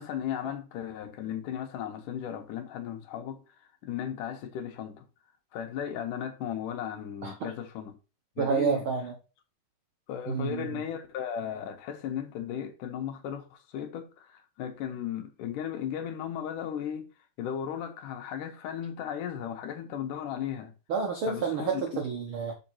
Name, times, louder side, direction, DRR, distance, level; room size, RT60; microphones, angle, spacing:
voice 1, 0.0-3.4 3.8-5.1 5.5-8.0 8.4-8.9 10.1-17.1 17.4-20.7 21.3-21.8, left 9 dB, 80° left, 2.5 m, -36 dB
voice 2, 8.4-9.1 10.3-10.8 20.9-22.5, right 6 dB, 70° right, 1.2 m, -29 dB
6.4 x 4.7 x 4.2 m
omnidirectional pair, 3.8 m